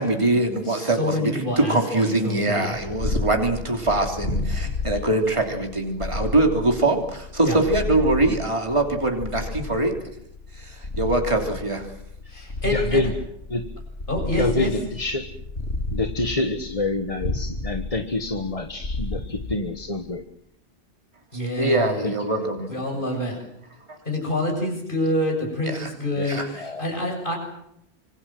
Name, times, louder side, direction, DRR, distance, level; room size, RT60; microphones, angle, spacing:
voice 1, 0.0-10.1 10.5-11.9 21.6-22.7 23.9-24.0 25.6-25.9 26.2-26.5, right 2 dB, 25° right, 3 dB, 3.3 m, -23 dB
voice 2, 0.7-2.8 7.4-7.6 12.3-13.1 14.1-14.7 21.3-22.1 22.7-23.4 24.1-27.4, left 1 dB, 45° left, 1 dB, 7.4 m, -27 dB
Purr, 2.7-20.2, left 2 dB, 70° left, 2.9 m, -32 dB
voice 3, 12.6-13.1 13.5-13.7 14.4-15.3 15.9-20.2 22.0-22.3 22.9-23.0 26.2-26.9, left 2 dB, 30° left, 7 dB, 1.4 m, -27 dB
26.0 x 24.5 x 7.7 m, 0.76 s
omnidirectional pair, 1.2 m